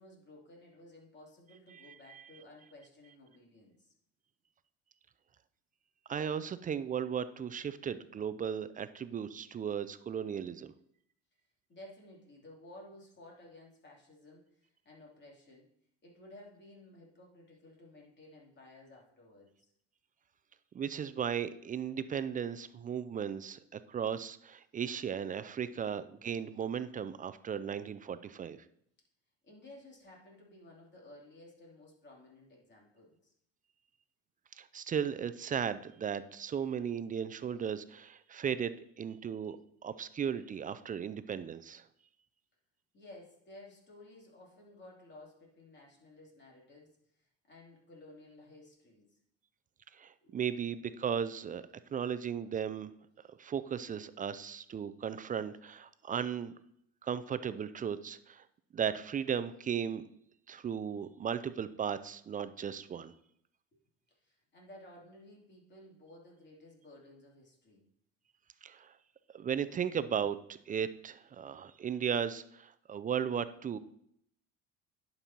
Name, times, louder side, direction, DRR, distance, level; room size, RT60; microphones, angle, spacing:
voice 1, 0.0-3.9 11.7-15.7 16.0-19.7 26.2-26.3 29.4-33.3 42.9-49.2 50.2-50.3 64.1-67.8, left 1 dB, 35° left, -3 dB, 3.1 m, -55 dB
voice 2, 1.7-2.2 6.1-10.7 20.7-28.6 34.6-41.8 50.0-51.6 51.9-52.9 53.3-56.5 57.0-58.4 58.7-60.0 60.5-63.1 68.6-68.9 69.3-73.8, right 7 dB, 25° right, 13 dB, 0.4 m, -36 dB
11.0 x 5.4 x 2.9 m, 0.71 s
supercardioid pair, 75°, 31 cm